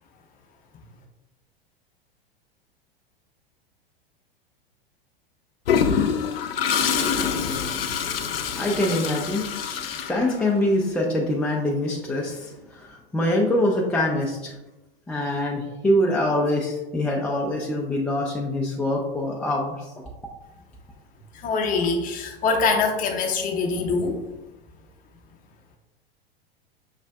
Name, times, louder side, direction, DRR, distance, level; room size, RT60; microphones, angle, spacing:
Toilet flush, 5.7-10.7, left 7 dB, 70° left, 0.5 m, -25 dB
voice 1, 8.6-14.5 15.1-19.7, left 1 dB, 5° left, -2 dB, 0.3 m, -24 dB
voice 2, 21.3-24.2, left 4 dB, 30° left, 2 dB, 0.7 m, -24 dB
6.3 x 2.4 x 2.2 m, 0.99 s
figure-of-eight pair, 90°, 30 cm